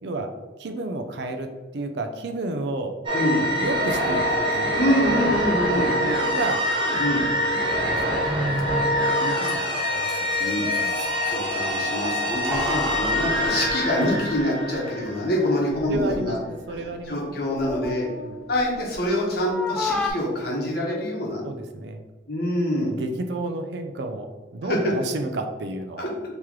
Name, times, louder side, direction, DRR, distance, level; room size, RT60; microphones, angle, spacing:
voice 1, 0.0-3.0 3.6-4.8 5.6-6.7 7.2-7.4 7.8-10.4 10.8-11.0 15.8-17.4 18.2-18.4 21.4-22.0 22.8-26.1, right 2 dB, 65° right, 6 dB, 0.4 m, -32 dB
sound 1, 3.1-15.6, equal, 25° right, 0.8 m, -25 dB
voice 2, 4.7-5.9 7.0-7.2 10.4-10.7 11.2-16.4 16.7-18.1 18.5-21.4 22.3-22.9 24.7-24.9 26.0-26.1, left 1 dB, 55° left, -3 dB, 1.0 m, -25 dB
Keys jangling, 8.3-8.4 8.5-8.6 9.2-11.3 12.3-14.4 14.7-14.8 15.7-16.2 16.6-19.1 19.4-20.1, left 2 dB, 5° left, 0.4 m, -33 dB
3.6 x 3.0 x 3.1 m, 1.3 s
head